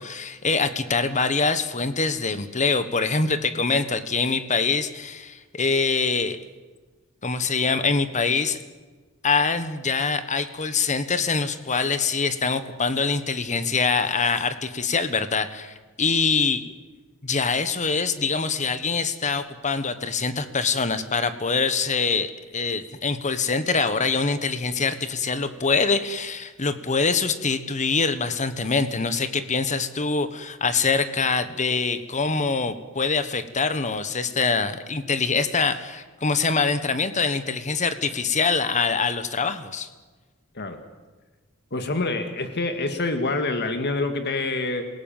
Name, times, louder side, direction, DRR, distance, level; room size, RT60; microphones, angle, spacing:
voice 1, 0.0-6.4 7.2-8.6 9.2-16.6 17.2-39.9, left 4 dB, 35° left, 12 dB, 1.4 m, -24 dB
voice 2, 41.7-44.9, left 2 dB, 50° left, 7 dB, 2.0 m, -26 dB
27.5 x 17.5 x 7.4 m, 1.3 s
head